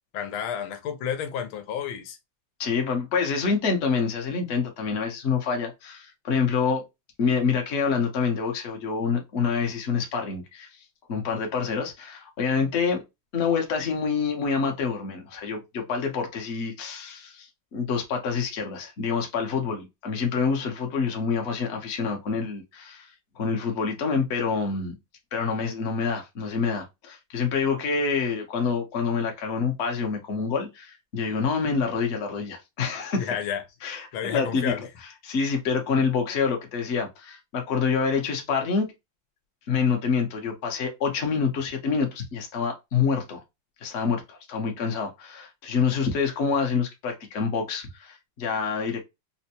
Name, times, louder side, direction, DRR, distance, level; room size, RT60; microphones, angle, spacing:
voice 1, 0.1-2.2 33.2-33.6 34.1-34.8, left 8 dB, 90° left, 1.5 m, -31 dB
voice 2, 2.6-6.8 7.2-10.7 11.1-13.0 13.3-23.1 23.4-24.9 25.3-33.3 33.8-34.7 35.2-38.9 39.7-43.4 43.8-49.0, left 5 dB, 50° left, 0.8 m, -27 dB
4.3 x 2.1 x 2.8 m
omnidirectional pair, 2.2 m